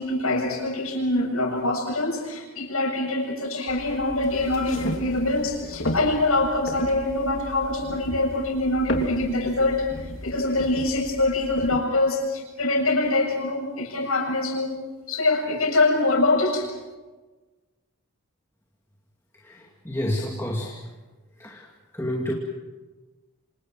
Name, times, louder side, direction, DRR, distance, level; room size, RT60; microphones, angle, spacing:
voice 1, 0.0-9.9 10.2-14.7 15.1-16.7, left 2 dB, 85° left, 2 dB, 7.3 m, -24 dB
sound 1, 3.7-11.8, left 1 dB, 60° left, 3.2 m, -34 dB
voice 2, 19.4-20.8 21.4-21.7 21.9-22.3, left 1 dB, 10° left, -2 dB, 2.5 m, -29 dB
29.5 x 26.0 x 6.0 m, 1.2 s
head